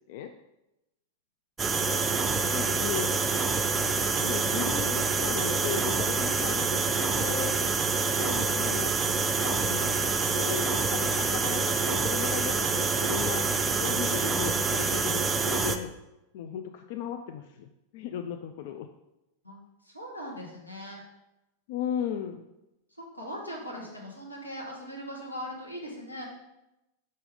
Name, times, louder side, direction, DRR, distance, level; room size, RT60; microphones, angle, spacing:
sound 1, 1.6-15.8, right 4 dB, 15° right, 0.5 m, -27 dB
voice 1, 1.8-2.6 19.4-19.6 19.8-21.0 23.0-26.2, equal, 85° left, -2 dB, 1.5 m, -40 dB
voice 2, 2.5-3.2 4.1-7.6 8.2-10.0 10.3-13.5 13.8-15.9 16.3-18.9 21.7-22.4, left 9 dB, 50° left, 7 dB, 0.3 m, -36 dB
5.5 x 5.1 x 3.8 m, 0.93 s
figure-of-eight pair, 90°, 0 cm